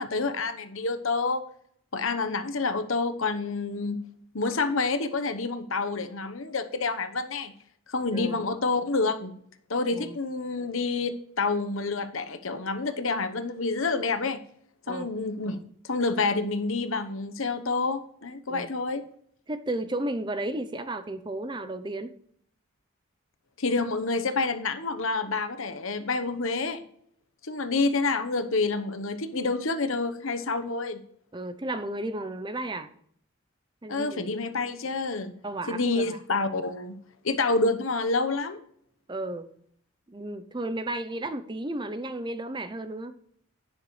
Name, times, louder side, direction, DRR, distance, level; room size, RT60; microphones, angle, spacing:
voice 1, 0.0-1.4 1.9-4.0 4.3-7.5 7.9-9.3 9.7-14.4 14.9-15.6 15.8-19.0 23.6-26.8 27.4-31.0 33.9-35.3 35.7-37.0 37.2-38.6, left 3 dB, 70° left, 1.0 m, -28 dB
voice 2, 8.1-8.5 9.9-10.2 14.9-15.1 15.4-15.6 18.5-18.7 19.5-22.1 31.3-32.9 33.8-34.3 35.4-36.2 39.1-39.5 40.1-43.1, right 1 dB, 20° right, 0.6 m, -33 dB
11.0 x 9.6 x 3.2 m
head